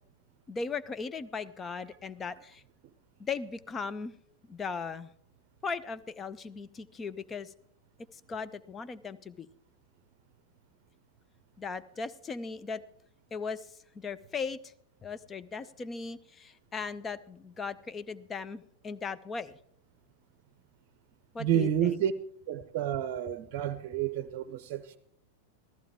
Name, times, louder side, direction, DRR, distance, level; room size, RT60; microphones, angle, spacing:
voice 1, 0.5-2.6 3.2-4.2 4.5-5.1 5.6-7.5 8.1-9.5 11.6-12.8 13.3-13.7 13.9-14.7 15.0-19.5 21.3-22.0, left 5 dB, 20° left, 0.6 m, -38 dB
voice 2, 21.4-22.1 22.5-25.0, right 10 dB, 45° right, 0.7 m, -30 dB
14.5 x 14.5 x 3.5 m
figure-of-eight pair, 90°, 0 cm